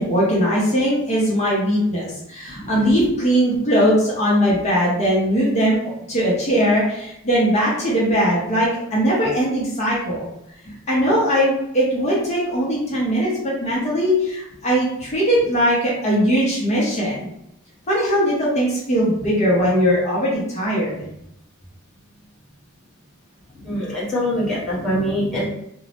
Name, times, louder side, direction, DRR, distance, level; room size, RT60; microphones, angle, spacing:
voice 1, 0.0-5.8 6.1-10.3 10.9-17.3 17.9-21.1, equal, 30° left, -6 dB, 0.7 m, -20 dB
voice 2, 23.6-25.4, equal, 5° left, -9 dB, 0.8 m, -24 dB
2.6 x 2.0 x 2.9 m, 0.80 s
head